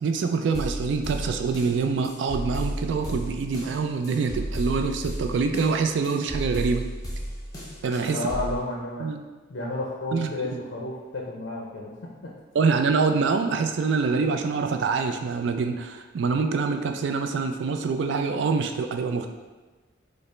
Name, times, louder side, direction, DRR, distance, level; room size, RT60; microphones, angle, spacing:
voice 1, 0.0-6.9 7.8-8.2 9.0-9.2 10.1-10.5 12.5-19.3, right 4 dB, 60° right, 6 dB, 0.3 m, -25 dB
sound 1, 0.5-8.6, equal, 20° left, 0.7 m, -33 dB
voice 2, 8.1-9.1 9.5-12.3, left 2 dB, 60° left, -3 dB, 0.5 m, -32 dB
5.1 x 2.0 x 3.2 m, 1.3 s
head